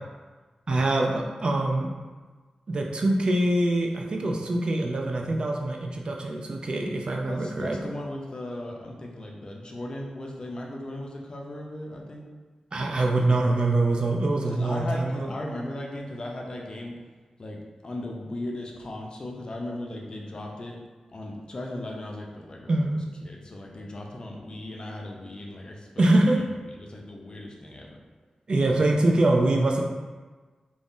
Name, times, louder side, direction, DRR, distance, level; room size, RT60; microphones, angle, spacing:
voice 1, 0.7-1.9 2.7-7.8 12.7-15.3 22.7-23.0 26.0-26.4 28.5-29.8, right 2 dB, 50° right, 0 dB, 0.4 m, -24 dB
voice 2, 7.3-12.2 14.5-16.9 17.4-20.8 21.1-26.1 26.3-27.9, left 1 dB, 40° left, -1 dB, 0.4 m, -37 dB
2.5 x 2.0 x 3.6 m, 1.4 s
wide cardioid pair, 95°, 2 cm